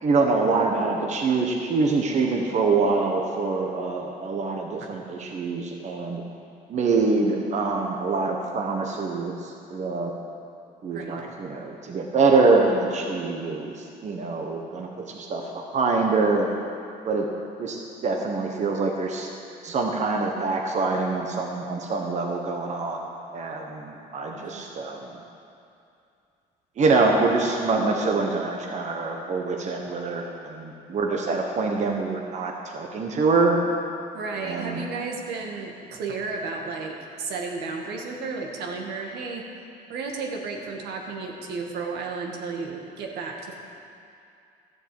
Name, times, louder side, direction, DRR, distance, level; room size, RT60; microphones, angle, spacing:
voice 1, 0.0-6.2 6.7-10.1 10.8-13.7 14.0-16.5 17.0-17.3 17.6-19.3 19.6-23.1 23.3-25.1 26.8-33.6 34.4-34.8, right 3 dB, 45° right, 1 dB, 1.3 m, -25 dB
voice 2, 24.3-24.7 34.1-39.4 39.9-43.5, right 4 dB, 75° right, 0 dB, 1.9 m, -33 dB
13.0 x 7.9 x 7.8 m, 2.5 s
cardioid pair, 110°, 17 cm